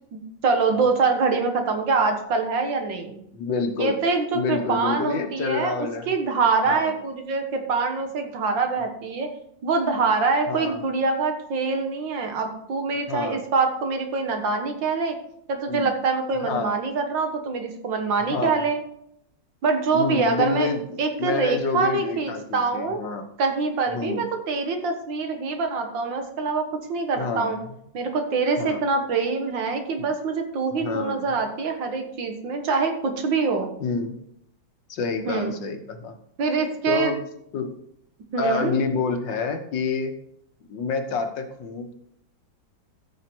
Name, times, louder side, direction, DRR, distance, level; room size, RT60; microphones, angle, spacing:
voice 1, 0.1-3.2 3.8-5.7 6.1-9.3 9.6-15.2 15.5-18.8 19.6-20.7 21.0-23.0 23.4-27.6 27.9-33.7 35.3-35.5 36.4-37.1 38.3-38.7, right 4 dB, 80° right, 5 dB, 2.2 m, -24 dB
voice 2, 3.3-4.0 4.3-6.1 6.7-7.0 10.5-10.8 13.1-13.5 15.7-15.9 16.4-16.8 18.3-18.7 19.9-23.3 23.9-24.3 27.2-27.5 28.6-28.8 30.0-30.1 30.8-31.4 33.8-34.2 34.9-36.2 36.9-37.2 37.5-37.7 38.4-40.2 40.7-41.9, left 4 dB, 75° left, 6 dB, 1.9 m, -28 dB
14.0 x 6.5 x 4.5 m, 0.73 s
omnidirectional pair, 2.0 m